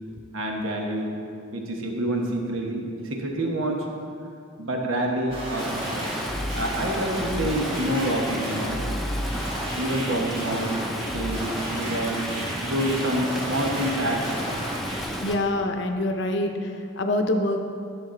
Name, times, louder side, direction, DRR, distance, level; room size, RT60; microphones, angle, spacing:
voice 1, 0.3-1.2 1.5-3.9 4.6-6.1 6.5-8.8 9.7-10.8 11.1-12.3 12.6-14.4, right 1 dB, 70° right, 1 dB, 1.2 m, -27 dB
sound 1, 5.3-15.0, equal, 25° right, 1.6 m, -33 dB
Stream, 5.6-15.4, equal, ahead, 0.7 m, -32 dB
voice 2, 15.2-17.6, left 1 dB, 55° left, 5 dB, 0.7 m, -25 dB
11.5 x 7.2 x 3.9 m, 2.5 s
head